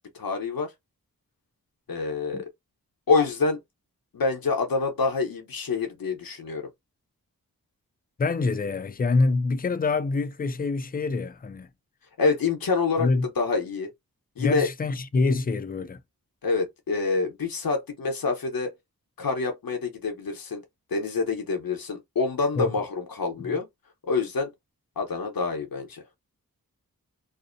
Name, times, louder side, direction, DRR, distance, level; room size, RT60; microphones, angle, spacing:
voice 1, 0.1-0.7 1.9-2.5 3.1-3.6 4.1-6.7 12.2-13.1 13.4-13.9 14.4-14.7 16.4-18.7 19.2-20.6 20.9-23.7 24.1-24.5 25.0-26.0, left 4 dB, 80° left, 0.8 m, -26 dB
voice 2, 8.2-11.7 13.0-13.3 14.4-16.0 22.6-22.7, left 3 dB, 25° left, 0.4 m, -25 dB
2.6 x 2.1 x 2.5 m
wide cardioid pair, 60°, 35 cm